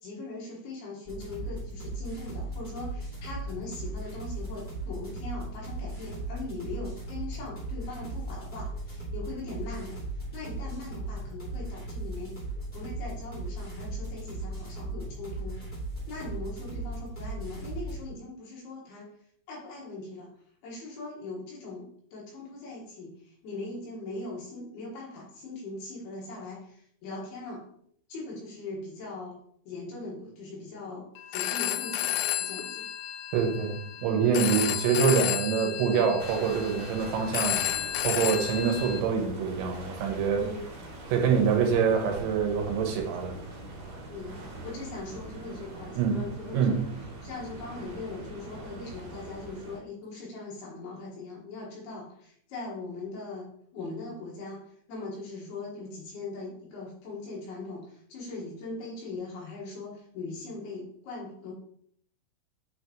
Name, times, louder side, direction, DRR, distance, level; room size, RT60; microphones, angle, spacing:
voice 1, 0.0-10.0 10.3-12.3 12.7-15.6 16.1-19.1 19.5-20.3 20.6-27.6 28.1-29.3 29.7-32.9 40.4-40.6 44.1-46.8 47.2-61.5, left 3 dB, 70° left, -4 dB, 3.2 m, -40 dB
sound 1, 1.0-18.0, right 2 dB, 15° left, 1.6 m, -37 dB
Telephone, 31.2-39.0, left 12 dB, 85° left, 2.9 m, -32 dB
voice 2, 33.3-37.6 38.0-40.4 41.1-43.3 46.0-46.2 46.5-46.8, right 6 dB, 80° right, 2 dB, 3.3 m, -25 dB
sound 2, 36.2-49.8, right 2 dB, 60° right, 3.0 m, -43 dB
8.7 x 4.0 x 3.0 m, 0.65 s
omnidirectional pair, 5.2 m